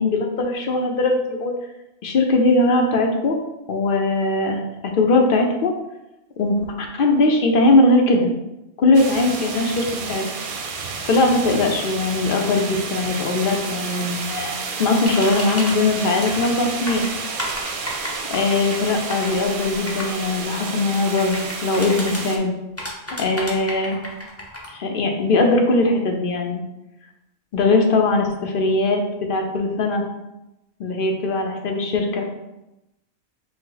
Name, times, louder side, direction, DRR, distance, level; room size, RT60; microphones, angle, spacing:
voice 1, 0.0-1.5 2.0-3.4 3.7-5.7 6.4-8.3 8.8-10.2 11.0-17.1 18.3-22.5 23.1-24.0 24.7-26.6 27.5-29.0 29.3-30.0 30.8-32.3, left 2 dB, 60° left, 2 dB, 0.8 m, -20 dB
sound 1, 8.9-22.4, right 4 dB, 60° right, 0.7 m, -31 dB
sound 2, 15.0-15.7 16.2-16.5 16.9-20.1 21.2-22.2 22.8-24.7, left 1 dB, 15° left, 0.6 m, -32 dB
5.2 x 2.1 x 3.8 m, 0.93 s
omnidirectional pair, 1.1 m